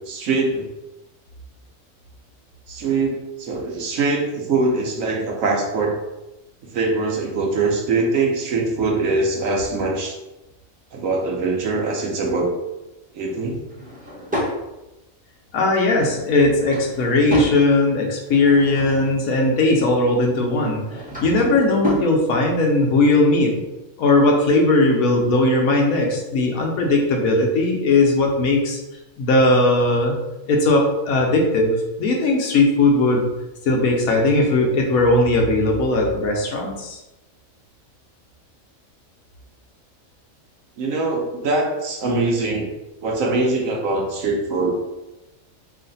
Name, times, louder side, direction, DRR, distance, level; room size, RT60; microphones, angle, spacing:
voice 1, 0.1-0.7 2.7-6.0 6.7-10.2 10.9-12.5 13.1-13.6 40.8-42.7 43.0-44.7, right 3 dB, 75° right, 1 dB, 1.1 m, -22 dB
Drawer open or close / Wood, 13.6-14.6 16.3-17.6 18.1-19.3 20.6-22.1, left 1 dB, 5° right, 0.8 m, -29 dB
voice 2, 15.5-20.8 21.2-23.6 24.0-28.8 29.2-30.2 30.5-33.3 33.7-37.0, left 2 dB, 85° left, 1 dB, 1.2 m, -18 dB
3.2 x 2.5 x 3.9 m, 0.98 s
omnidirectional pair, 1.4 m